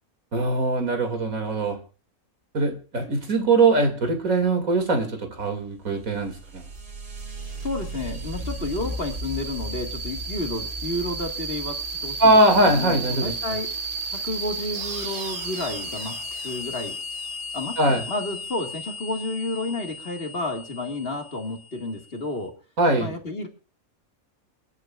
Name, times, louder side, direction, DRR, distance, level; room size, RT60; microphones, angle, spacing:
voice 1, 0.3-1.8 2.5-6.6 12.2-13.3 17.8-18.0 22.8-23.1, right 2 dB, 75° right, 6 dB, 2.9 m, -21 dB
sound 1, 6.0-22.3, right 2 dB, 40° right, 1.5 m, -34 dB
voice 2, 7.6-13.7 14.1-17.0 17.5-22.5 23.0-23.5, left 2 dB, 45° left, 3 dB, 2.2 m, -31 dB
28.5 x 10.5 x 2.5 m, 0.33 s
omnidirectional pair, 1.5 m